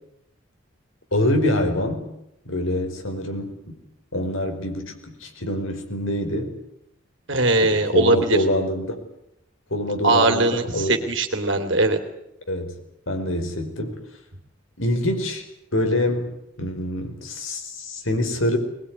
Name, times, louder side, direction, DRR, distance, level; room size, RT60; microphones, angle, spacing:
voice 1, 1.1-2.1 2.4-3.7 4.1-6.5 7.6-8.9 9.7-11.0 12.5-12.7 13.1-14.0 14.8-15.4 15.7-18.6, left 1 dB, 90° left, 5 dB, 4.9 m, -25 dB
voice 2, 7.3-8.4 10.0-12.0, right 2 dB, 70° right, 6 dB, 2.8 m, -20 dB
21.5 x 21.0 x 9.7 m, 0.80 s
head